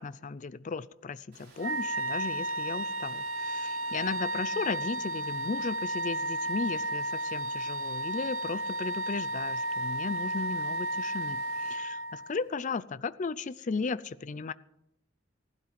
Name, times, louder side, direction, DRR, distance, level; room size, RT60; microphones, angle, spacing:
voice 1, 0.0-14.5, left 4 dB, 40° left, 17 dB, 0.4 m, -35 dB
Water, 1.3-11.8, right 2 dB, 50° right, 6.8 m, -55 dB
Wind instrument woodwind instrument, 1.6-12.4, right 1 dB, 70° right, 1.2 m, -33 dB
15.5 x 12.5 x 5.9 m, 0.84 s
head